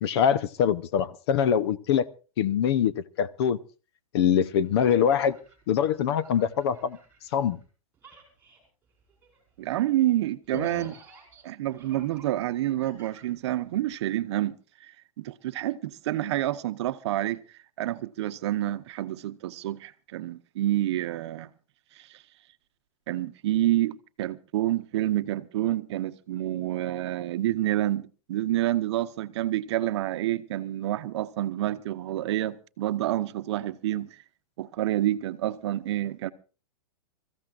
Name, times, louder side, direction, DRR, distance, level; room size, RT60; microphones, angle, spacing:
voice 1, 0.0-2.1 2.4-3.6 4.1-5.4 5.7-7.0 7.3-7.6 10.5-10.8, left 8 dB, 45° left, 0.8 m, -24 dB
sound 1, 4.6-7.7 7.9-13.9, right 5 dB, 10° right, 5.4 m, -55 dB
voice 2, 9.6-10.9 11.4-14.6 15.2-17.4 17.8-21.5 22.0-22.1 23.1-34.1 34.6-36.3, right 14 dB, 50° right, 0.9 m, -28 dB
28.0 x 15.0 x 2.5 m
supercardioid pair, 165°, 18 cm